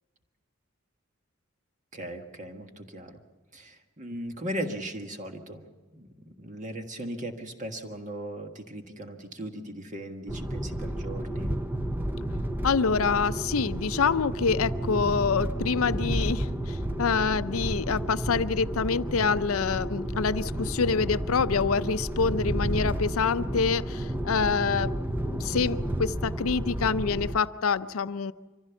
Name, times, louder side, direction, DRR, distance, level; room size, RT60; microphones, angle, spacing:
voice 1, 1.9-3.2 3.5-5.6 5.9-6.1 6.4-11.5, right 1 dB, 35° right, 5 dB, 1.6 m, -38 dB
sound 1, 10.3-27.4, right 1 dB, 10° right, 0.7 m, -31 dB
voice 2, 12.6-24.9 25.3-28.3, left 5 dB, 85° left, 14 dB, 0.5 m, -26 dB
24.5 x 15.5 x 7.1 m, 1.3 s
head